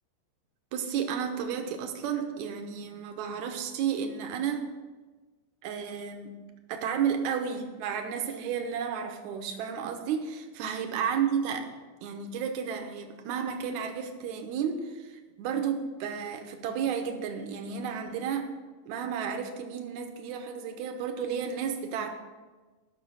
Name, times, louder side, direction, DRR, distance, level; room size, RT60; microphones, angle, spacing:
voice 1, 0.7-4.6 5.6-6.4 6.7-11.7 12.0-18.5 18.9-22.1, right 7 dB, 70° right, 5 dB, 1.9 m, -32 dB
11.5 x 6.2 x 6.2 m, 1.3 s
omnidirectional pair, 4.3 m